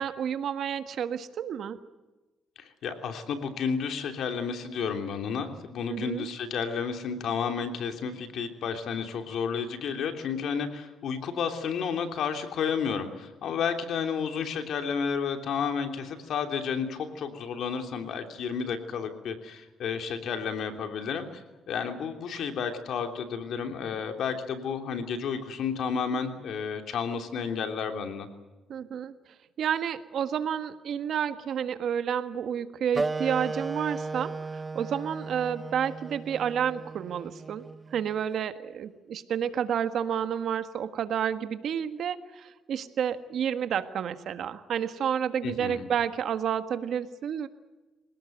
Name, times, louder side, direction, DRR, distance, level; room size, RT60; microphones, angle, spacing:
voice 1, 0.0-1.8 5.9-6.3 28.7-29.1 29.6-37.6 37.9-47.5, right 8 dB, 65° right, 10 dB, 1.6 m, -30 dB
voice 2, 2.6-21.4 21.7-28.3 45.4-45.8, left 6 dB, 70° left, 5 dB, 3.2 m, -31 dB
Wind instrument woodwind instrument, 32.9-38.1, right 3 dB, 25° right, 0.8 m, -35 dB
27.0 x 18.0 x 7.9 m, 1.1 s
cardioid pair, 90°, 0 cm